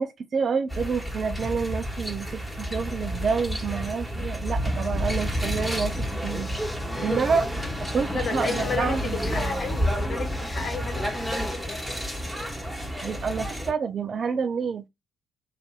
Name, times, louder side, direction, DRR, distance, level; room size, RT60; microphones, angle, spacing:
voice 1, 0.0-6.6 7.0-7.5 7.8-9.2 13.0-14.9, right 5 dB, 45° right, 0.3 m, -28 dB
sound 1, 0.7-13.7, equal, 5° right, 1.2 m, -30 dB
sound 2, 5.7-11.5, left 2 dB, 20° left, 0.6 m, -39 dB
voice 2, 7.1-7.4 8.1-11.9, left 5 dB, 45° left, 1.0 m, -33 dB
3.3 x 2.6 x 2.3 m
figure-of-eight pair, 40°, 0 cm